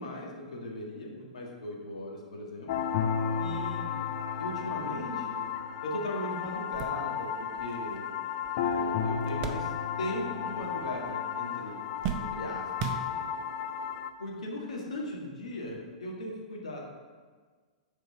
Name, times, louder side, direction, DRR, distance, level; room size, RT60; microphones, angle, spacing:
voice 1, 0.0-2.8 3.4-4.0 4.4-5.4 5.8-8.0 8.6-9.7 10.0-11.8 12.2-13.2 14.2-16.9, left 1 dB, 65° left, -2 dB, 1.7 m, -38 dB
sound 1, 2.7-14.1, left 7 dB, 50° left, 0.5 m, -33 dB
sound 2, 6.0-6.1 6.5-10.2 10.5-11.2 11.5-13.6 14.3-14.4 15.7-15.9, right 7 dB, 35° right, 0.6 m, -39 dB
8.0 x 4.4 x 5.4 m, 1.5 s
figure-of-eight pair, 100°, 4 cm